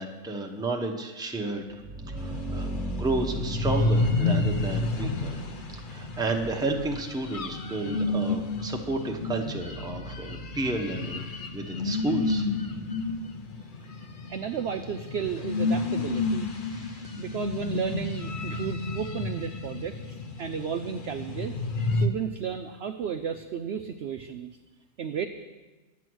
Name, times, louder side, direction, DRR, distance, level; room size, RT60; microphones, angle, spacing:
voice 1, 0.0-1.7 2.1-5.4 5.9-11.2 11.5-12.5 16.6-17.2, right 2 dB, 5° right, 1 dB, 0.7 m, -32 dB
sound 1, 1.6-13.2, right 1 dB, 25° right, 1.4 m, -39 dB
sound 2, 2.2-22.1, left 3 dB, 45° left, 0.7 m, -31 dB
voice 2, 14.3-16.4 17.2-21.5 21.9-24.5 25.0-25.3, right 7 dB, 70° right, 7 dB, 0.6 m, -33 dB
11.0 x 8.3 x 6.2 m, 1.2 s
omnidirectional pair, 1.6 m